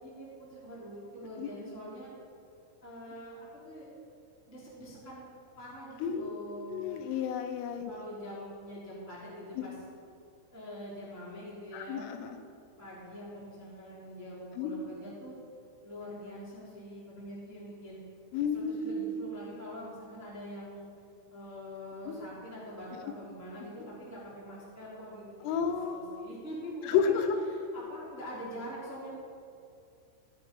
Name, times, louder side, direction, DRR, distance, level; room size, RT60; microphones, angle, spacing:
voice 1, 0.0-2.1 2.8-3.9 4.5-5.3 5.6-7.0 7.9-9.7 10.5-12.2 12.8-15.3 15.8-18.0 18.5-20.9 21.3-25.6 25.9-27.2 27.5-29.1, equal, 5° right, -7 dB, 2.0 m, -44 dB
voice 2, 6.0-6.3 6.7-8.0 9.6-9.7 11.7-12.4 14.6-14.7 18.3-19.2 22.1-22.2 25.4-26.3 26.8-27.4, left 6 dB, 85° left, 7 dB, 3.4 m, -31 dB
13.5 x 9.2 x 5.4 m, 2.4 s
omnidirectional pair, 5.9 m